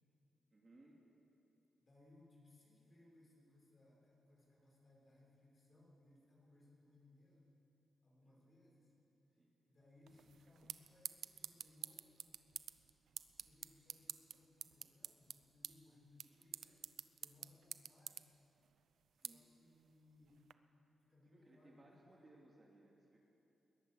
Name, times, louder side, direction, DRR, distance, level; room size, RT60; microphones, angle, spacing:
voice 1, 0.5-1.0 8.2-8.4 9.4-9.5 10.1-10.2 17.5-17.6 19.2-19.5 21.2-23.2, right 2 dB, 25° right, -2 dB, 2.8 m, -65 dB
voice 2, 1.8-7.5 8.0-8.9 9.3-9.4 9.6-12.5 13.3-16.9 17.2-18.3 19.2-20.4 21.0-22.2, left 2 dB, 30° left, -4 dB, 6.4 m, -67 dB
sound 1, 10.1-20.5, right 8 dB, 80° right, 0.6 m, -52 dB
21.5 x 18.5 x 7.7 m, 2.9 s
wide cardioid pair, 145°, 0 cm